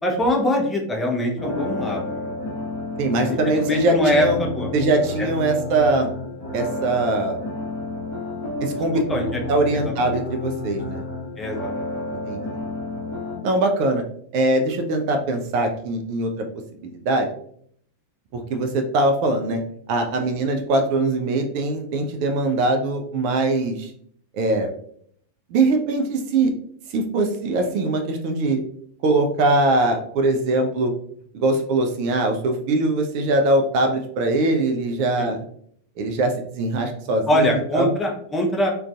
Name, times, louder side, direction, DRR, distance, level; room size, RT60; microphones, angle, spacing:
voice 1, 0.0-2.3 3.2-4.7 5.2-5.3 8.9-9.4 9.7-10.2 11.4-11.7 35.2-35.3 37.3-38.7, left 1 dB, 15° left, -1 dB, 0.6 m, -23 dB
sound 1, 1.4-13.4, left 2 dB, 50° left, 0.8 m, -30 dB
voice 2, 3.0-4.4 4.7-6.1 6.5-7.4 8.6-9.0 9.5-11.0 12.2-12.4 13.4-14.0 14.3-16.5 16.8-17.3 18.3-19.6 19.9-23.9 24.3-24.7 25.5-26.5 26.9-28.6 29.0-30.9 31.3-35.4 36.0-37.9, right 2 dB, 45° right, 4 dB, 0.3 m, -22 dB
2.4 x 2.2 x 2.3 m, 0.63 s
figure-of-eight pair, 90°, 0 cm